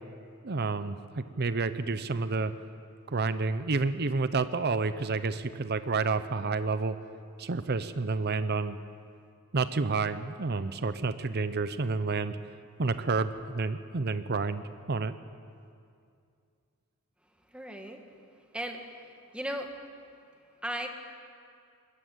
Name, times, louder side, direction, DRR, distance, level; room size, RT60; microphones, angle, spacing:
voice 1, 0.4-2.5 3.1-7.0 7.4-8.8 9.5-12.4 12.8-14.6 14.9-15.1, right 4 dB, 45° right, 12 dB, 0.7 m, -29 dB
voice 2, 17.5-18.0 18.5-18.8 19.3-19.7 20.6-20.9, equal, 5° right, 4 dB, 1.5 m, -35 dB
21.0 x 14.5 x 8.9 m, 2.4 s
head